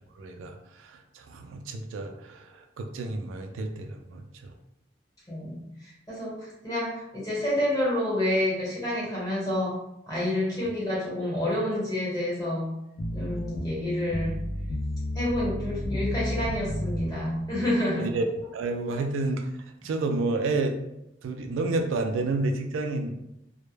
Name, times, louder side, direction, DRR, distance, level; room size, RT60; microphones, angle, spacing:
voice 1, 0.2-4.5 18.0-18.3 18.5-19.5 19.8-20.8 21.2-23.2, right 3 dB, 85° right, 5 dB, 0.3 m, -30 dB
voice 2, 5.3-9.7 10.1-12.7 13.1-14.4 15.1-18.1, left 1 dB, 20° left, -7 dB, 1.1 m, -29 dB
sound 1, 13.0-17.5, left 1 dB, 75° left, 0.4 m, -32 dB
2.1 x 2.1 x 3.1 m, 0.84 s
head